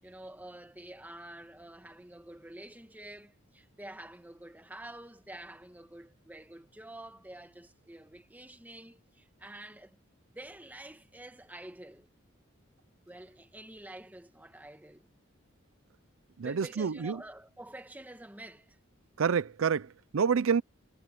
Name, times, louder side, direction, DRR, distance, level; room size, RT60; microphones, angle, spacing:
voice 1, 0.0-10.0 10.3-12.1 13.1-15.1 16.4-18.8, right 1 dB, 10° right, 1.4 m, -48 dB
voice 2, 16.4-17.2 19.2-20.6, right 6 dB, 75° right, 0.5 m, -28 dB
head